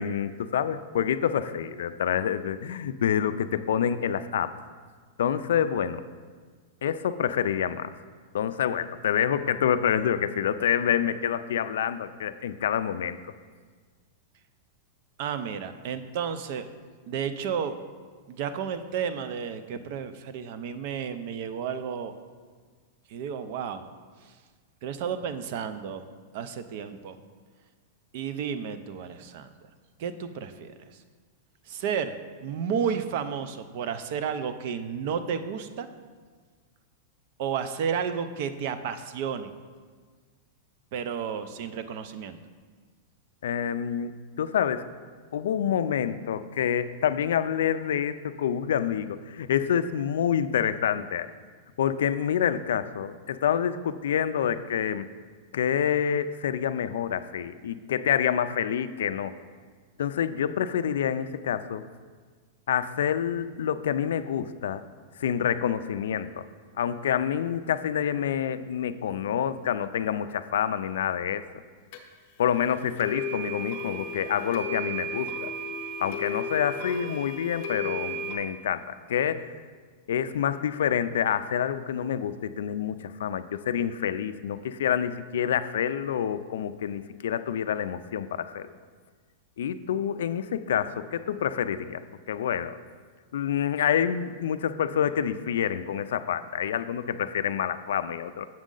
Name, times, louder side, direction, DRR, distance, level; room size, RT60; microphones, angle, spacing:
voice 1, 0.0-4.5 5.2-6.0 6.8-7.9 8.3-13.2 43.4-44.9 45.3-51.3 51.8-55.1 55.5-59.4 60.0-61.8 62.7-64.8 65.2-66.5 66.8-71.4 72.4-75.5 76.0-79.5 80.1-88.7 89.6-92.0 92.3-92.8 93.3-98.5, left 9 dB, 85° left, 12 dB, 0.3 m, -27 dB
voice 2, 15.2-16.6 17.1-17.7 18.3-22.1 23.1-23.8 24.8-26.0 26.3-27.2 28.1-29.5 30.0-30.7 31.7-32.1 32.4-35.9 37.4-39.5 40.9-42.4, right 7 dB, 45° right, 11 dB, 0.4 m, -32 dB
sound 1, 71.9-72.0 73.0-78.3, left 1 dB, 45° left, 0.7 m, -34 dB
7.4 x 6.2 x 3.8 m, 1.5 s
supercardioid pair, 170°, 0 cm